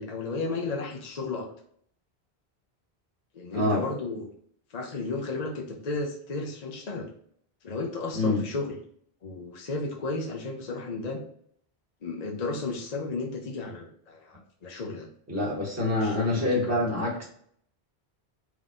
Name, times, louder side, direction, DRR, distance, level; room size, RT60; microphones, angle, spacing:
voice 1, 0.0-1.5 3.3-4.3 4.7-7.1 7.6-8.7 9.2-11.2 12.0-15.1 16.0-17.1, left 3 dB, 45° left, 1 dB, 0.8 m, -33 dB
voice 2, 3.5-3.8 8.1-8.4 15.3-17.3, left 2 dB, 15° right, -5 dB, 1.5 m, -26 dB
3.8 x 3.0 x 3.7 m, 0.63 s
omnidirectional pair, 1.1 m